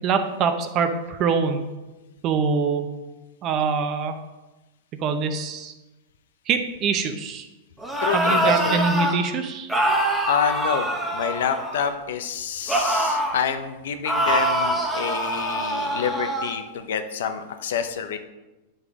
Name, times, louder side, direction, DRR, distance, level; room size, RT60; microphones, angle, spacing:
voice 1, 0.0-1.7 2.2-2.9 3.4-4.1 5.0-5.7 6.5-7.5 8.1-9.7, right 5 dB, 40° right, 7 dB, 0.7 m, -24 dB
sound 1, 7.8-9.2 9.7-12.0 12.7-13.4 14.0-16.5, right 1 dB, 5° right, 1.3 m, -24 dB
voice 2, 8.0-8.8 10.3-18.2, left 7 dB, 75° left, 8 dB, 0.7 m, -27 dB
8.7 x 5.1 x 3.6 m, 1.1 s
hypercardioid pair, 120°, 0 cm